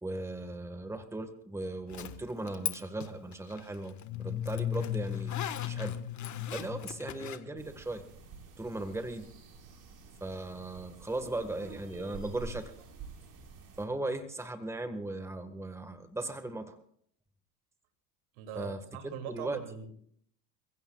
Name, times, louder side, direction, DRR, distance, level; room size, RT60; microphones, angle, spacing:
voice 1, 0.0-5.3 5.7-6.0 6.5-8.0 8.6-9.3 10.2-12.7 13.8-16.8 18.5-19.6, right 2 dB, 5° right, 8 dB, 1.6 m, -37 dB
Zipper (clothing), 1.9-2.7 3.0-7.4, left 9 dB, 40° left, 1.5 m, -40 dB
sound 1, 3.9-8.0, left 10 dB, 70° left, 3.2 m, -37 dB
sound 2, 7.6-13.9, right 4 dB, 50° right, 4.9 m, -49 dB
voice 2, 18.4-19.9, right 8 dB, 75° right, 6 dB, 2.8 m, -41 dB
29.0 x 16.0 x 2.4 m, 0.63 s
supercardioid pair, 105°, 46 cm